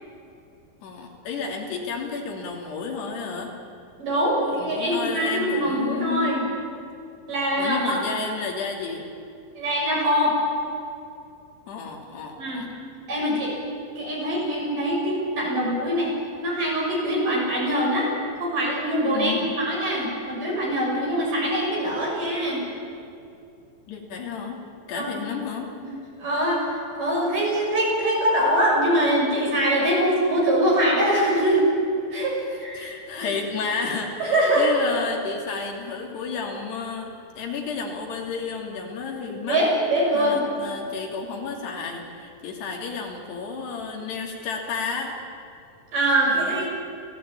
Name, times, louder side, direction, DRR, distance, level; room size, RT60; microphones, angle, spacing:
voice 1, 0.8-3.5 4.5-6.5 7.6-9.1 11.7-12.7 19.1-19.6 23.9-25.7 32.7-39.6 40.1-45.2 46.3-46.7, left 5 dB, 85° left, 1 dB, 5.0 m, -31 dB
voice 2, 4.0-6.5 7.3-8.0 9.5-10.4 12.4-12.7 13.1-13.5 14.0-16.1 16.4-18.1 18.4-22.6 24.9-25.2 25.8-25.9 26.2-31.7 32.1-33.3 34.2-34.7 39.5-40.4 45.9-46.7, right 1 dB, 55° right, -3 dB, 8.3 m, -23 dB
29.0 x 16.5 x 9.0 m, 2.6 s
omnidirectional pair, 4.7 m